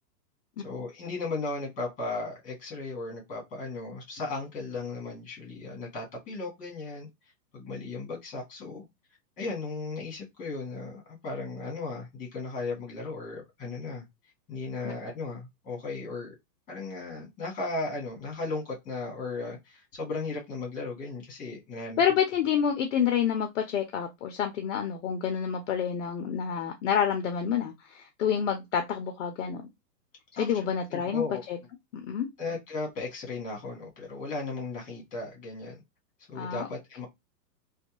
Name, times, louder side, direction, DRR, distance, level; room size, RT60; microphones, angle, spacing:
voice 1, 0.6-7.1 7.5-8.8 9.4-14.0 14.5-16.3 16.7-22.0 30.4-31.4 32.4-35.8 36.3-37.1, left 3 dB, 15° left, 1.2 m, -36 dB
voice 2, 22.0-29.6 30.4-31.6 31.9-32.3 36.3-36.7, left 8 dB, 50° left, 0.5 m, -28 dB
2.5 x 2.2 x 2.9 m
hypercardioid pair, 150°, 49 cm